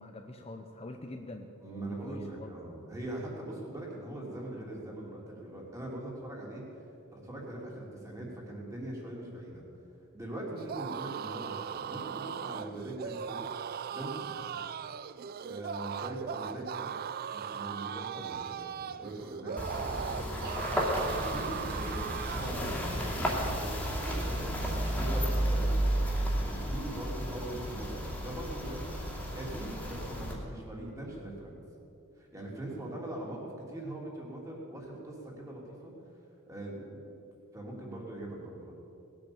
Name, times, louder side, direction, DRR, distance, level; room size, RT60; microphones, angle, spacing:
voice 1, 0.0-2.6 15.8-16.1, left 2 dB, 30° left, 4 dB, 0.7 m, -45 dB
voice 2, 1.6-6.6 7.1-9.6 10.1-13.5 13.9-14.6 15.5-16.9 17.3-25.9 26.4-29.0 29.3-31.6 32.2-35.9 36.5-37.0 37.5-38.7, right 1 dB, 15° right, -3 dB, 3.1 m, -42 dB
sound 1, 10.6-22.7, right 8 dB, 45° right, 0.4 m, -38 dB
sound 2, 19.6-30.3, equal, 5° left, 2.6 m, -32 dB
18.5 x 8.9 x 7.2 m, 2.7 s
head